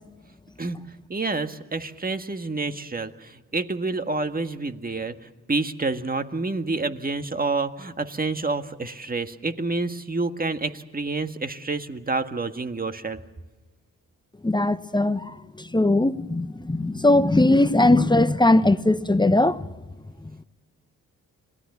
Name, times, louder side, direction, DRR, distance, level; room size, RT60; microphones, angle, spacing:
voice 1, 1.1-5.1 5.5-13.2, right 3 dB, 25° right, 1.7 m, -28 dB
voice 2, 14.4-19.7, left 2 dB, 10° left, 1.0 m, -20 dB
25.5 x 17.5 x 7.2 m
supercardioid pair, 50°, 36 cm